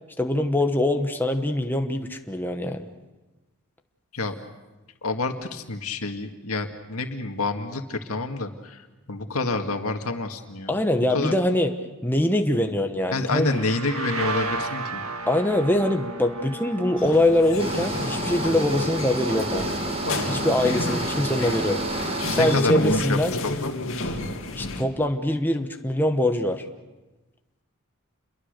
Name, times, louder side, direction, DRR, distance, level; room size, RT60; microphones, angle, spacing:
voice 1, 0.2-2.9 10.7-11.7 12.0-13.6 15.3-19.7 20.3-21.8 22.3-23.3 24.5-26.6, left 1 dB, 10° left, 5 dB, 1.1 m, -23 dB
voice 2, 5.0-10.8 11.1-11.3 13.1-15.0 22.2-23.8, left 3 dB, 80° left, 5 dB, 2.0 m, -28 dB
sound 1, 13.3-20.8, right 2 dB, 75° right, 1.7 m, -35 dB
sound 2, 17.0-24.8, left 2 dB, 60° left, 2.3 m, -31 dB
sound 3, 17.6-22.6, right 1 dB, 25° right, 2.3 m, -29 dB
28.0 x 22.5 x 6.7 m, 1.1 s
head